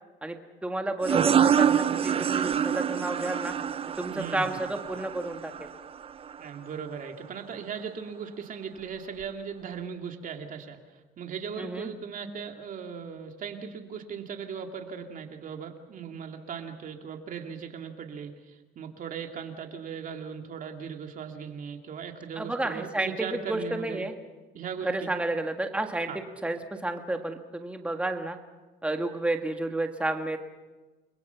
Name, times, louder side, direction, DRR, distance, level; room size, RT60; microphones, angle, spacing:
voice 1, 0.2-3.5 4.0-5.5 11.6-11.9 22.3-24.1 24.8-28.4 28.8-30.4, right 2 dB, 5° right, 5 dB, 1.8 m, -31 dB
sound 1, 1.0-6.4, right 8 dB, 35° right, 0.7 m, -26 dB
voice 2, 4.1-4.6 6.4-10.8 11.2-24.1 24.5-25.1 26.1-26.2, right 6 dB, 55° right, 4 dB, 2.8 m, -38 dB
30.0 x 22.0 x 5.9 m, 1.2 s
cardioid pair, 110°, 17 cm